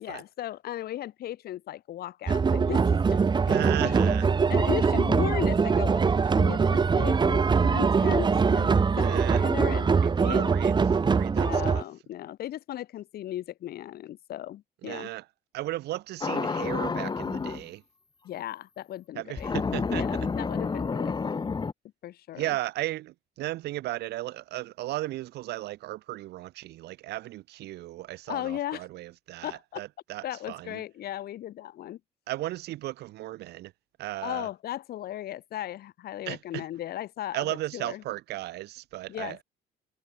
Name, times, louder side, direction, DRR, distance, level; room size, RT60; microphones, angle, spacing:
voice 1, 0.0-3.2 3.5-3.6 3.8-4.2 4.5-9.9 10.2-10.5 11.4-15.1 18.2-19.5 19.9-21.6 22.0-22.6 28.3-28.9 29.4-29.8 30.2-32.0 34.2-37.5 37.7-38.0 39.1-39.4, left 13 dB, 65° left, 3.8 m, -36 dB
sound 1, 2.3-11.8, right 5 dB, 25° right, 1.5 m, -23 dB
voice 2, 3.5-4.3 9.0-9.4 10.0-10.8 11.2-11.8 14.8-15.2 15.5-17.8 19.1-20.0 22.4-30.8 32.3-33.7 34.0-34.5 36.3-36.6 37.3-39.4, right 16 dB, 80° right, 4.5 m, -35 dB
sound 2, 16.2-17.6 19.4-21.7, left 4 dB, 25° left, 2.6 m, -29 dB
cardioid pair, 110°, 17 cm